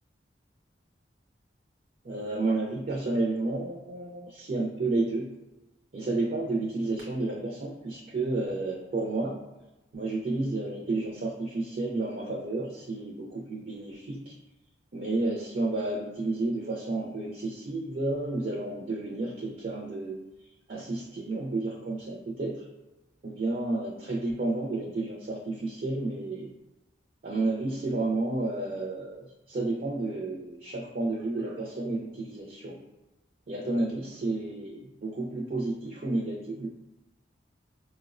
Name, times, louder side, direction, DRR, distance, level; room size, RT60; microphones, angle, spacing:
voice 1, 2.0-5.3 5.9-9.4 9.9-14.3 14.9-20.1 20.7-22.6 23.2-26.5 27.2-32.8 33.5-36.7, right 2 dB, 50° right, -3 dB, 0.4 m, -31 dB
4.3 x 2.0 x 2.4 m, 1.0 s
head